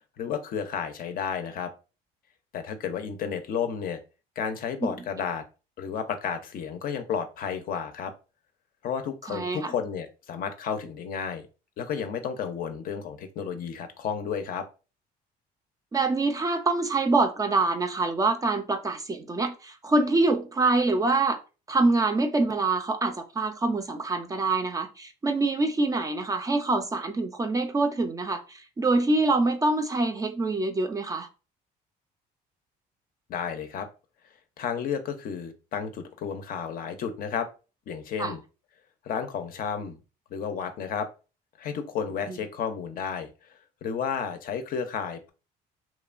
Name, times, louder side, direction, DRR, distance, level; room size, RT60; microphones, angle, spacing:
voice 1, 0.2-1.7 2.5-4.0 4.4-5.4 5.8-8.1 8.8-11.5 11.8-14.7 33.3-33.9 34.6-37.5 37.9-38.4 39.0-40.0 40.3-41.1 41.6-43.5 43.8-45.3, left 7 dB, 55° left, 0.5 m, -32 dB
voice 2, 9.3-9.6 15.9-21.4 21.7-31.3 38.2-38.4 42.3-42.4, right 3 dB, 20° right, 0.3 m, -25 dB
2.9 x 2.1 x 2.4 m
cardioid pair, 110°, 17 cm